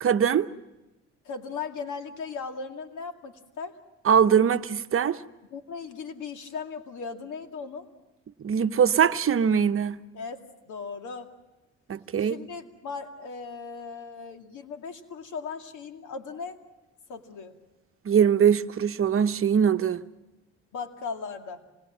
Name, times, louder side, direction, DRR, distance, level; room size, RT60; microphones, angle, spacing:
voice 1, 0.0-0.5 4.0-5.2 8.4-10.0 11.9-12.4 18.0-20.0, right 7 dB, 45° right, 0.9 m, -22 dB
voice 2, 1.2-3.8 5.5-7.9 10.1-11.3 12.2-16.6 17.1-17.5 20.7-21.6, left 5 dB, 80° left, 2.4 m, -37 dB
26.5 x 20.5 x 7.4 m
cardioid pair, 90°, 30 cm